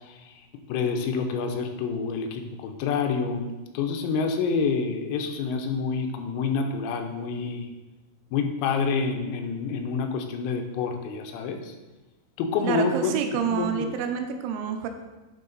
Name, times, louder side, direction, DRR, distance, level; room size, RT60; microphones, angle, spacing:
voice 1, 0.0-7.7 8.3-11.8 12.4-13.2 13.5-13.9, left 5 dB, 90° left, 5 dB, 3.6 m, -28 dB
voice 2, 12.6-14.9, right 7 dB, 85° right, 6 dB, 3.5 m, -28 dB
9.4 x 6.4 x 4.0 m, 1.1 s
omnidirectional pair, 6.0 m